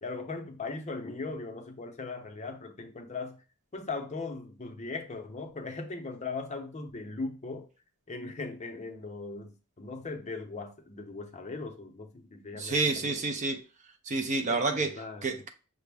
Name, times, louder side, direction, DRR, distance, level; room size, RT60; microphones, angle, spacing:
voice 1, 0.0-3.4 3.7-7.7 8.1-13.2 14.5-15.4, left 3 dB, 30° left, 0.6 m, -39 dB
voice 2, 12.6-13.6 14.1-15.0 15.2-15.5, right 3 dB, 35° right, 0.4 m, -29 dB
5.8 x 2.1 x 3.3 m
head